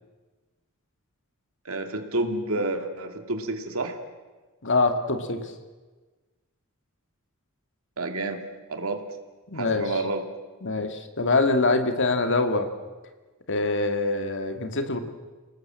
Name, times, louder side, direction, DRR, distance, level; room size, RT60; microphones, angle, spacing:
voice 1, 1.6-4.0 8.0-8.4 8.7-9.0 9.5-10.2, right 2 dB, 70° right, 6 dB, 2.6 m, -29 dB
voice 2, 4.6-5.5 9.5-9.8 10.6-12.7 13.5-15.0, left 3 dB, 60° left, 7 dB, 2.2 m, -24 dB
28.0 x 19.5 x 7.7 m, 1.3 s
head